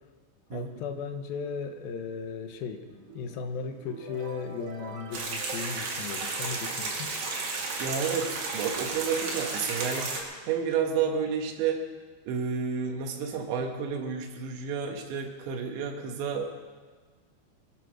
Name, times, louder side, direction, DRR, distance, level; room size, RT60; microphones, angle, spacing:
voice 1, 0.5-2.9 3.1-7.1, left 5 dB, 75° left, 6 dB, 2.5 m, -36 dB
sound 1, 2.7-6.4 7.2-7.3 7.8-9.7, right 2 dB, 40° right, 2.3 m, -48 dB
sound 2, 5.1-10.2, right 3 dB, 60° right, 3.9 m, -33 dB
voice 2, 7.8-10.2 10.4-11.8 12.3-16.5, right 6 dB, 90° right, 2 dB, 3.6 m, -30 dB
23.0 x 9.9 x 6.2 m, 1.5 s
omnidirectional pair, 5.0 m